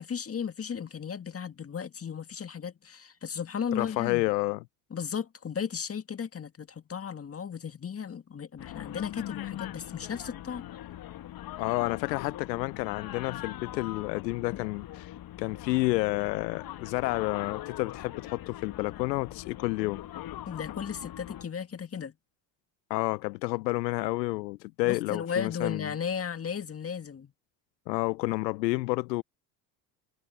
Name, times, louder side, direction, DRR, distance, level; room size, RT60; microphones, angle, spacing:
voice 1, 0.0-4.2 4.9-10.7 20.5-22.1 24.9-27.3, left 7 dB, 30° left, 1.9 m, -35 dB
voice 2, 3.7-4.6 11.6-20.0 22.9-25.9 27.9-29.2, left 21 dB, 80° left, 0.8 m, -30 dB
sound 1, 8.6-21.4, left 13 dB, 45° left, 1.2 m, -41 dB
hypercardioid pair, 65°, 50 cm